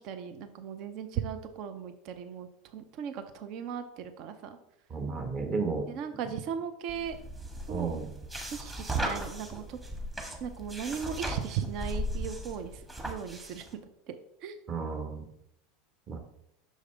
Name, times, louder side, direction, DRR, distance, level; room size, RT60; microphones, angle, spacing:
voice 1, 0.0-4.6 5.9-7.2 7.7-8.0 8.5-9.8 10.4-13.8 14.1-14.6, right 7 dB, 55° right, 9 dB, 0.6 m, -37 dB
voice 2, 4.9-5.9 7.7-8.1 14.7-15.3 16.1-16.2, right 4 dB, 35° right, 4 dB, 1.3 m, -33 dB
sound 1, 6.9-13.7, right 1 dB, 15° right, 1.4 m, -37 dB
6.4 x 4.9 x 3.3 m, 0.77 s
hypercardioid pair, 85°, 0 cm